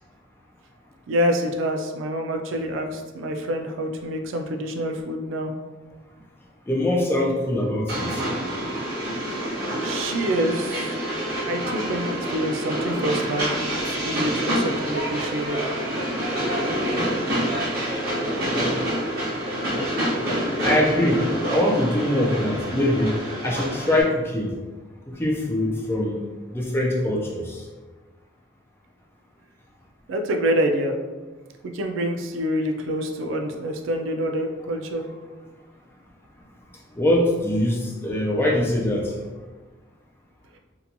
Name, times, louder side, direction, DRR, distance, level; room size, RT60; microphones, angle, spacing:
voice 1, 1.1-5.5 9.8-10.9 11.5-13.5 13.9-15.6 30.1-30.9 31.7-35.0, equal, 85° right, 4 dB, 0.3 m, -26 dB
voice 2, 6.7-8.2 20.6-21.2 21.5-23.2 23.4-24.5 25.1-26.2 26.5-27.6 37.0-39.1, left 1 dB, 10° left, -2 dB, 0.3 m, -23 dB
Train, 7.9-24.0, equal, 50° right, 0.9 m, -27 dB
2.8 x 2.2 x 2.6 m, 1.3 s
head